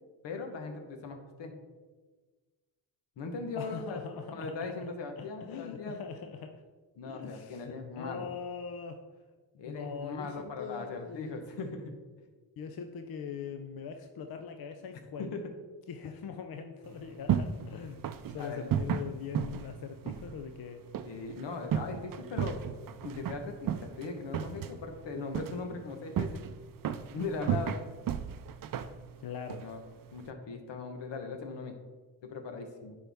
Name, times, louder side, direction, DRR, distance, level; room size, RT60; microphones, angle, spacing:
voice 1, 0.2-1.5 3.2-4.0 4.3-6.0 7.0-8.3 9.5-11.9 15.2-15.4 18.4-18.7 21.1-22.6 23.0-26.4 27.1-27.8 29.6-29.8 30.1-31.7 32.2-32.9, left 4 dB, 80° left, 4 dB, 1.2 m, -39 dB
voice 2, 3.6-4.9 5.2-6.6 7.0-9.0 9.6-11.4 12.6-15.3 15.9-18.0 18.3-20.8 29.2-29.7, left 6 dB, 60° left, 6 dB, 0.6 m, -42 dB
sound 1, 16.8-30.3, right 8 dB, 55° right, 0.5 m, -35 dB
10.0 x 4.5 x 3.5 m, 1.4 s
cardioid pair, 95°, 42 cm